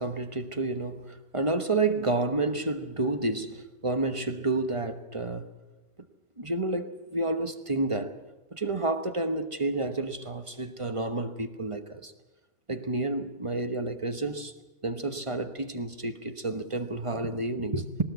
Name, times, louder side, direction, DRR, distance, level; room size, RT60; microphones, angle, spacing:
voice 1, 0.0-5.5 6.4-8.2 8.5-12.1 12.7-14.5 14.8-18.0, right 2 dB, 25° right, 1.1 m, -30 dB
19.5 x 19.5 x 8.2 m
omnidirectional pair, 1.3 m